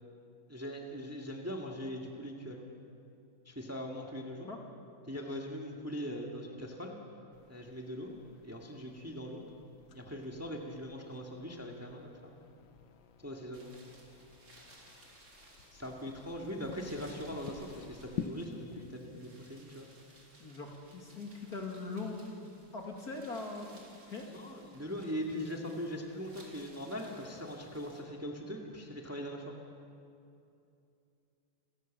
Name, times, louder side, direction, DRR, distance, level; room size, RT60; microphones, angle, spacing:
voice 1, 0.5-2.7 3.5-4.5 5.1-6.9 7.5-8.1 8.4-9.4 9.9-12.3 13.2-13.7 15.7-20.2 24.3-29.5, equal, 5° right, 0 dB, 1.9 m, -41 dB
sound 1, 7.3-18.8, left 6 dB, 70° left, 1.7 m, -49 dB
sound 2, 13.5-28.0, right 1 dB, 45° right, 4.0 m, -60 dB
voice 2, 20.4-24.2, left 3 dB, 50° left, 1 dB, 2.7 m, -41 dB
29.0 x 14.5 x 7.4 m, 2.6 s
omnidirectional pair, 2.2 m